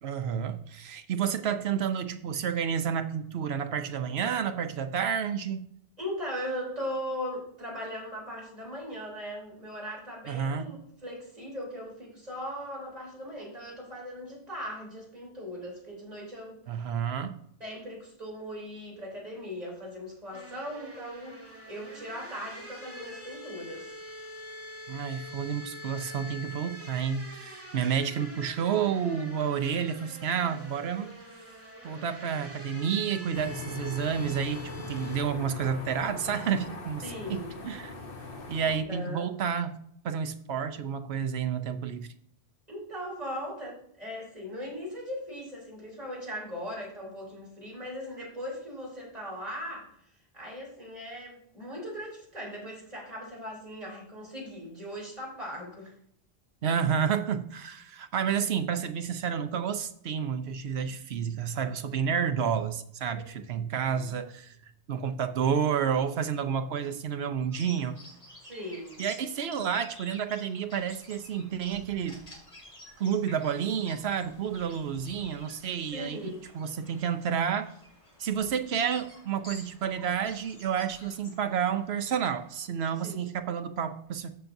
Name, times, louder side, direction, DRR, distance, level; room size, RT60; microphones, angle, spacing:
voice 1, 0.0-5.7 10.3-10.7 16.7-17.4 24.9-31.1 31.8-37.0 37.3-37.9 38.5-39.8 40.0-42.1 56.6-64.6 64.9-68.0 69.0-72.2 73.0-77.7 78.2-84.3, right 7 dB, 75° right, 8 dB, 1.0 m, -30 dB
voice 2, 6.0-16.6 17.6-23.9 27.8-28.0 37.0-37.6 38.8-39.3 42.7-49.9 50.3-55.9 63.1-63.2 68.5-69.1 75.9-76.5 83.0-83.2, equal, 40° right, -4 dB, 3.7 m, -39 dB
sound 1, 20.3-35.2, equal, 15° right, 1.6 m, -45 dB
sound 2, 33.3-38.8, left 4 dB, 60° left, 1.2 m, -41 dB
Bird vocalization bird call bird song, 67.5-82.7, left 1 dB, 35° left, 2.7 m, -51 dB
14.0 x 5.9 x 2.6 m, 0.69 s
omnidirectional pair, 1.1 m